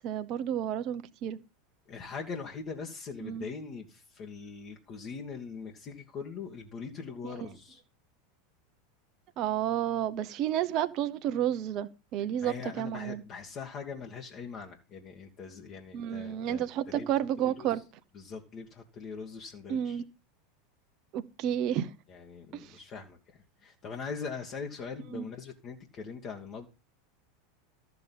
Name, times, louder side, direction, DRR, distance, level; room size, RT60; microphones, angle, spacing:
voice 1, 0.0-1.4 3.2-3.5 9.4-13.2 15.9-17.8 19.7-20.0 21.1-21.9 22.5-22.8 25.1-25.3, right 10 dB, 45° right, 0.9 m, -31 dB
voice 2, 1.9-7.8 12.4-17.1 17.4-17.8 18.1-20.0 22.1-26.7, left 5 dB, 40° left, 1.9 m, -42 dB
13.5 x 7.0 x 5.5 m
figure-of-eight pair, 85°, 0 cm